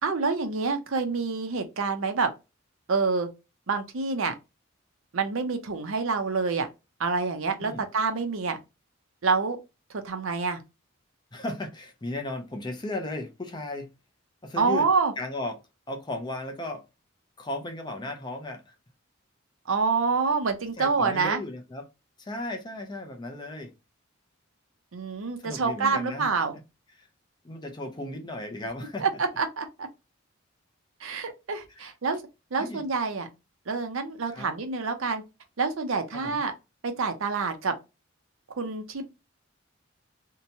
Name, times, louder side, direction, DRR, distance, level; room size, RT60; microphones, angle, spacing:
voice 1, 0.0-2.3 2.9-3.3 3.7-4.3 5.1-6.7 7.0-8.6 9.2-9.6 10.0-10.6 14.6-15.1 19.7-21.4 24.9-26.6 29.0-29.9 31.0-32.2 32.5-33.3 33.7-35.2 35.6-36.5 36.8-37.7 38.6-39.0, right 4 dB, 80° right, 0.6 m, -27 dB
voice 2, 11.3-13.9 14.4-14.9 15.2-15.6 15.9-16.8 17.4-18.7 20.8-21.9 22.2-23.7 25.4-26.3 27.0-27.1 27.4-29.0 31.7-31.9 32.6-32.8 34.3-34.5 36.1-36.4, left 2 dB, 20° left, 0.5 m, -35 dB
2.8 x 2.2 x 2.7 m
head